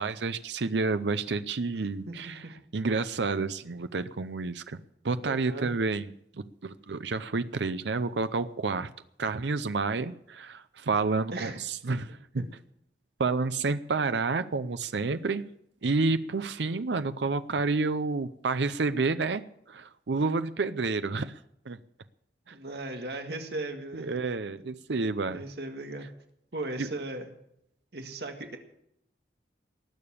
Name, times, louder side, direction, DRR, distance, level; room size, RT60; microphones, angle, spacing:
voice 1, 0.0-2.4 2.7-4.8 5.0-8.9 9.2-12.4 13.2-15.4 15.8-21.3 21.7-21.8 22.5-22.6 23.9-25.4 26.8-26.9, right 3 dB, 85° right, 12 dB, 0.6 m, -29 dB
voice 2, 5.2-5.7 11.3-11.6 22.5-24.1 25.3-26.1 26.5-27.3 27.9-28.6, right 2 dB, 70° right, 5 dB, 1.8 m, -37 dB
19.5 x 6.9 x 8.6 m, 0.74 s
head